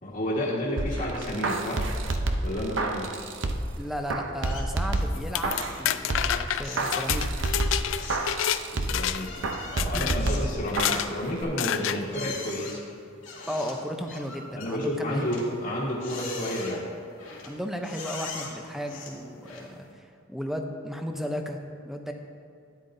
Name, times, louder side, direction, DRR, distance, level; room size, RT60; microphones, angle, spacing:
voice 1, 0.0-1.8 2.4-3.1 8.7-9.3 9.7-12.8 14.6-16.9, equal, 45° left, -8 dB, 1.5 m, -31 dB
sound 1, 0.8-3.8 4.1-5.8 6.1-9.1 9.4-11.1 11.4-11.5, right 2 dB, 65° right, 0.7 m, -29 dB
voice 2, 3.8-7.3 9.9-10.2 13.5-15.3 17.4-21.6 21.8-22.1, equal, ahead, 4 dB, 0.6 m, -34 dB
sound 2, 4.4-5.2 5.4-5.8 6.1-19.9, left 4 dB, 90° left, 1.9 m, -42 dB
sound 3, 5.1-8.6 8.9-9.4 9.8-10.2 10.7-11.1 11.6-12.0, left 10 dB, 70° left, 0.4 m, -28 dB
12.5 x 10.0 x 2.7 m, 2.5 s
head